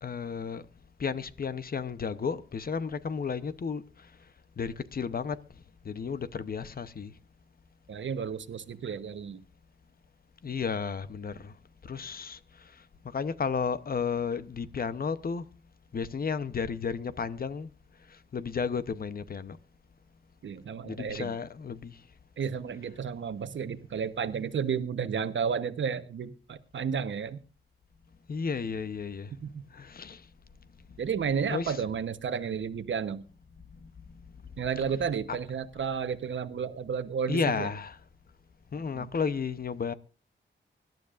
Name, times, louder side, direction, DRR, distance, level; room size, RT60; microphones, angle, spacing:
voice 1, 0.0-0.6 1.0-4.1 4.6-5.4 5.8-7.1 10.4-11.6 11.8-15.5 15.9-17.7 18.1-19.6 20.8-22.0 28.3-29.3 29.7-30.2 31.5-31.8 33.8-33.9 37.3-38.0 38.7-39.9, left 5 dB, 50° left, 0.8 m, -33 dB
voice 2, 7.9-9.4 20.4-21.3 22.4-27.4 29.3-29.6 31.0-33.2 34.6-37.7 38.9-39.1, right 7 dB, 70° right, 1.1 m, -32 dB
24.5 x 12.0 x 2.5 m
wide cardioid pair, 115°, 20 cm